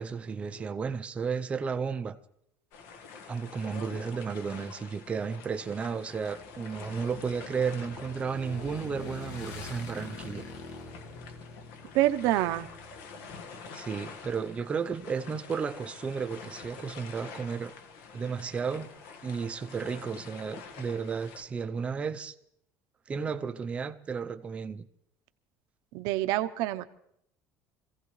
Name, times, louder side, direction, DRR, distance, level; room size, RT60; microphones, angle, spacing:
voice 1, 0.0-2.2 3.3-10.5 13.7-17.7 18.1-18.9 19.2-22.3 23.1-24.9, right 5 dB, 20° right, 0.6 m, -33 dB
sound 1, 2.7-21.4, left 5 dB, 75° left, 1.4 m, -47 dB
Motorcycle / Engine, 6.4-13.4, left 3 dB, 60° left, 1.6 m, -45 dB
voice 2, 11.9-12.7 25.9-26.8, right 15 dB, 75° right, 0.7 m, -26 dB
25.5 x 16.0 x 3.1 m
cardioid pair, 170°, 6 cm